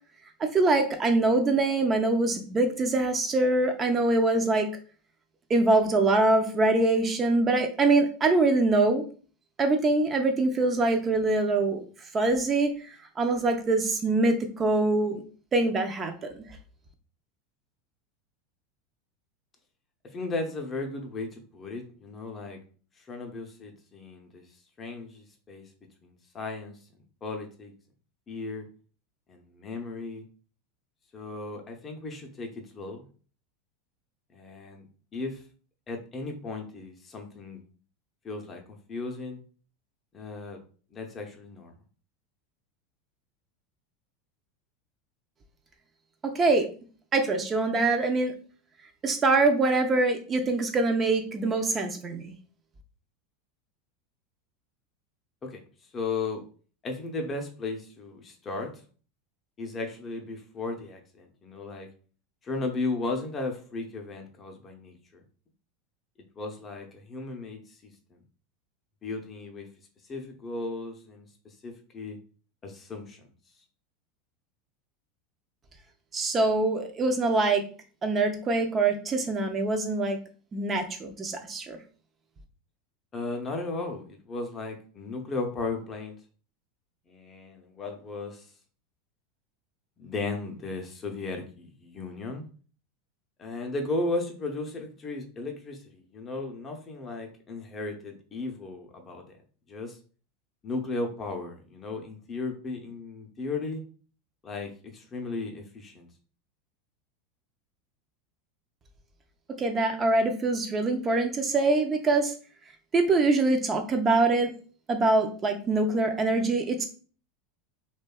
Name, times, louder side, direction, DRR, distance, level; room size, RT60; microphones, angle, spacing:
voice 1, 0.4-4.7 5.5-9.0 9.6-11.8 12.1-12.9 13.2-15.2 15.5-16.3 46.2-46.7 47.1-48.3 49.0-52.3 76.1-77.6 78.0-80.2 80.5-81.8 109.6-112.3 112.9-114.5 114.9-116.9, right 2 dB, 30° right, 6 dB, 0.5 m, -24 dB
voice 2, 20.1-22.6 23.1-24.5 24.8-25.7 26.0-26.8 27.2-27.7 28.3-28.7 29.3-30.2 31.1-33.1 34.3-34.9 35.1-35.4 35.9-37.6 38.2-39.4 40.1-40.6 40.9-41.7 55.4-55.6 55.9-56.4 56.8-58.8 59.6-61.9 62.4-65.2 66.4-68.2 69.0-69.7 70.1-72.2 72.6-73.3 83.1-86.2 87.1-88.5 90.0-92.4 93.4-99.3 99.7-100.0 100.6-103.8 104.4-106.1, left 3 dB, 30° left, 3 dB, 0.5 m, -35 dB
2.6 x 2.2 x 2.2 m, 0.40 s
hypercardioid pair, 100°, 0 cm